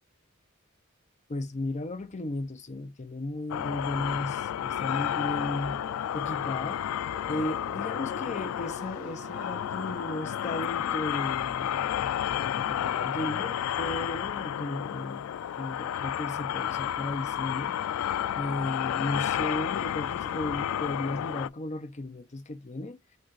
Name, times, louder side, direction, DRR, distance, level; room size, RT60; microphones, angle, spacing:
voice 1, 1.3-5.8 6.1-6.8 7.3-15.3 15.6-23.0, left 2 dB, 35° left, 0.6 m, -35 dB
sound 1, 3.5-21.5, left 10 dB, 85° left, 0.3 m, -31 dB
Dog, 5.3-11.7, right 3 dB, 30° right, 0.5 m, -49 dB
5.1 x 2.4 x 3.9 m
head